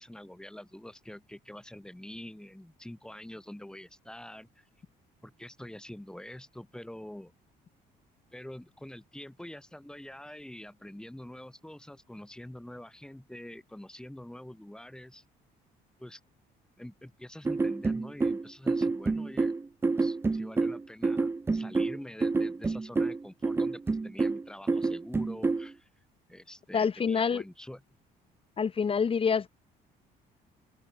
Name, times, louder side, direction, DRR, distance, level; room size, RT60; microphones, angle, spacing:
voice 1, 0.0-4.7 5.2-7.3 8.3-15.2 16.0-16.2 16.8-19.6 19.9-25.9 26.3-27.8, left 1 dB, 5° left, 3.9 m, -46 dB
sound 1, 17.4-25.7, right 3 dB, 15° right, 0.5 m, -28 dB
voice 2, 26.7-27.4 28.6-29.5, left 6 dB, 35° left, 2.5 m, -26 dB
open air
cardioid pair, 110°, 17 cm